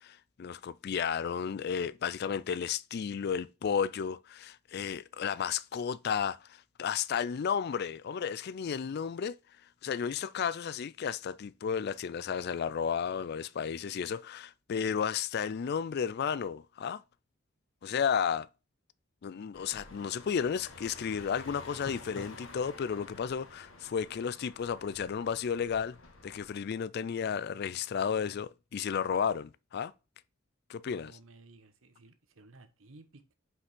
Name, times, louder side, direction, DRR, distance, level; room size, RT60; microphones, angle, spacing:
voice 1, 0.0-9.4 9.8-17.0 17.8-18.5 19.2-26.0 26.2-29.9 30.7-31.1, left 7 dB, 50° left, 0.4 m, -33 dB
sound 1, 19.5-26.5, left 2 dB, 70° left, 1.8 m, -50 dB
voice 2, 30.7-33.3, right 2 dB, 75° right, 1.2 m, -56 dB
5.8 x 5.5 x 6.1 m
head